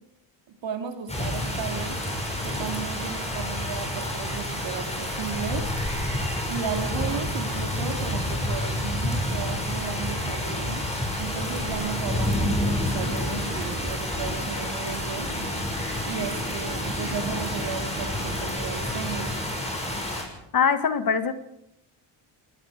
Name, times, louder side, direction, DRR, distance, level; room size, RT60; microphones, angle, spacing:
voice 1, 0.6-2.0 2.4-5.7 6.4-10.8 11.2-15.3 16.0-19.3, right 7 dB, 65° right, 4 dB, 3.3 m, -34 dB
sound 1, 1.1-20.2, left 1 dB, 15° left, 6.8 m, -29 dB
voice 2, 20.5-21.3, left 6 dB, 45° left, 10 dB, 1.6 m, -22 dB
28.0 x 19.5 x 5.1 m, 0.81 s
cardioid pair, 115°, 47 cm